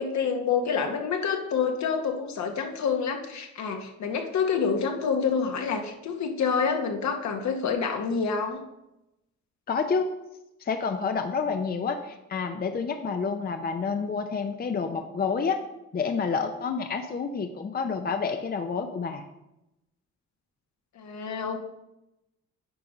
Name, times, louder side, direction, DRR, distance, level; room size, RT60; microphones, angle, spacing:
voice 1, 0.0-8.6 20.9-21.6, left 6 dB, 65° left, 4 dB, 1.3 m, -27 dB
voice 2, 9.7-10.1 10.6-15.6 15.9-19.3, left 5 dB, 30° left, 7 dB, 0.6 m, -29 dB
9.4 x 3.7 x 5.3 m, 0.91 s
cardioid pair, 90°, 30 cm